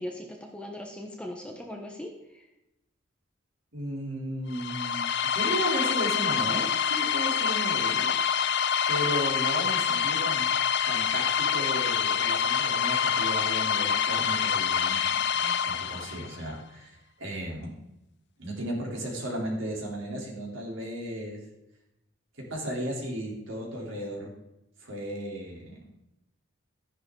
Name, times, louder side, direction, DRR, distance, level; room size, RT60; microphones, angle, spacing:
voice 1, 0.0-2.5, left 1 dB, 5° left, 1 dB, 1.0 m, -39 dB
voice 2, 3.7-5.0 5.3-8.1 8.9-10.5 10.8-17.7 18.4-21.4 22.4-24.3 24.8-25.9, equal, 65° right, -2 dB, 3.4 m, -35 dB
sound 1, 4.5-16.4, left 7 dB, 55° left, 0.4 m, -26 dB
12.5 x 10.5 x 3.8 m, 0.90 s
head